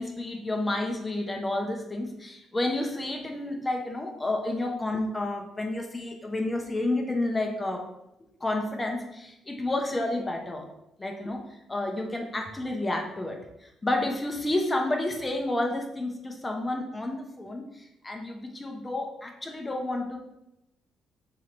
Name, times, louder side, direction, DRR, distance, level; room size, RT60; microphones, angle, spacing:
voice 1, 0.0-7.8 8.4-10.7 11.0-11.4 11.7-20.2, left 2 dB, 20° left, 2 dB, 0.8 m, -30 dB
3.6 x 3.0 x 4.4 m, 0.86 s
cardioid pair, 90°, 0 cm